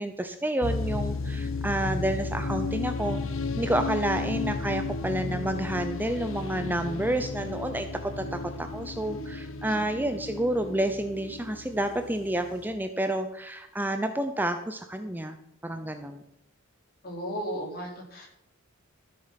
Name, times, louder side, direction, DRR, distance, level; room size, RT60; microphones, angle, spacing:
voice 1, 0.0-3.2 3.6-15.4 15.6-16.2, right 1 dB, 10° right, 7 dB, 0.6 m, -29 dB
sound 1, 0.6-12.6, left 3 dB, 65° left, 1.0 m, -33 dB
voice 2, 17.0-18.3, equal, 45° left, -1 dB, 3.8 m, -35 dB
14.0 x 7.8 x 5.8 m, 0.82 s
head